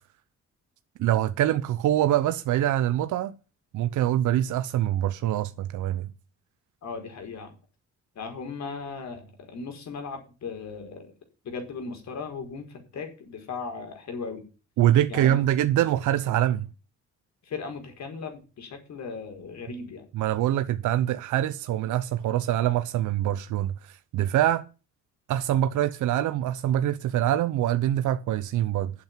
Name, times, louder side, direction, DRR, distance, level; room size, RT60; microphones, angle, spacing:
voice 1, 1.0-3.3 3.7-6.1 14.8-16.7 20.1-24.7 25.3-28.9, right 12 dB, 80° right, 0.8 m, -24 dB
voice 2, 6.8-7.5 8.1-11.1 11.4-14.5 15.1-15.4 17.4-20.0, left 4 dB, 65° left, 4.9 m, -37 dB
8.8 x 7.7 x 9.1 m
cardioid pair, 90°, 30 cm